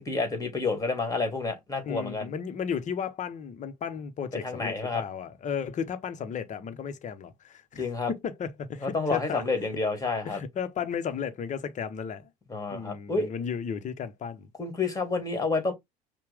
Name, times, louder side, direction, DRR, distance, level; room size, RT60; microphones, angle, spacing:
voice 1, 0.0-2.3 4.4-5.0 7.8-8.1 8.8-10.4 12.5-13.3 14.6-15.7, left 3 dB, 15° left, 2.0 m, -29 dB
voice 2, 1.8-9.4 10.2-12.3 12.7-14.5, left 7 dB, 40° left, 0.9 m, -34 dB
5.7 x 2.3 x 3.5 m
figure-of-eight pair, 60°, 20 cm